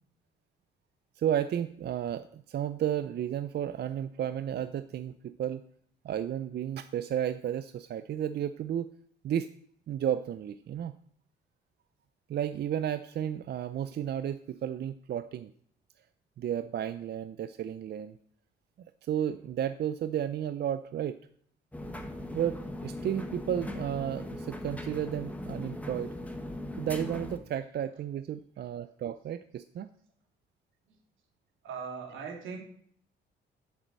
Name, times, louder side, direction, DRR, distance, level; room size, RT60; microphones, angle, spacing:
voice 1, 1.2-5.7 6.0-8.9 9.2-9.5 9.9-10.9 12.3-15.5 16.4-18.2 19.0-21.2 22.3-26.1 26.8-29.9, right 10 dB, 55° right, 12 dB, 0.5 m, -33 dB
sound 1, 21.7-27.4, left 1 dB, 5° left, 1.5 m, -39 dB
voice 2, 28.6-28.9 30.9-31.0 31.6-32.6, right 5 dB, 85° right, 1 dB, 2.8 m, -41 dB
8.3 x 8.0 x 7.5 m, 0.64 s
cardioid pair, 90°, 20 cm